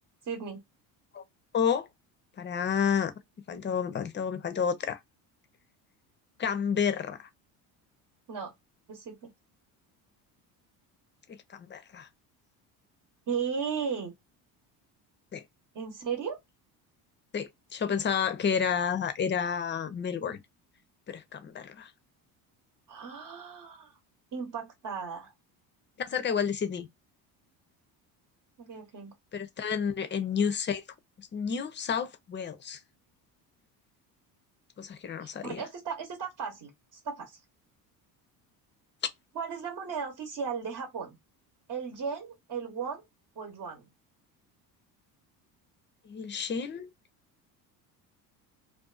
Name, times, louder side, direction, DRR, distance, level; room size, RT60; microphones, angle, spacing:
voice 1, 0.2-0.6 8.3-8.5 8.9-9.3 13.3-14.1 15.7-16.4 22.9-24.0 24.3-25.3 28.6-29.1 35.2-37.4 39.3-41.2 41.7-43.0 43.4-43.9, right 6 dB, 45° right, 0.9 m, -36 dB
voice 2, 1.5-1.9 2.4-3.1 3.5-5.0 6.4-7.3 11.3-12.1 15.3-15.4 17.3-20.4 21.1-21.9 26.0-26.9 29.3-30.8 31.2-32.8 34.8-35.6 46.1-46.9, left 7 dB, 25° left, 0.5 m, -30 dB
2.5 x 2.3 x 2.3 m
supercardioid pair, 80°, 43 cm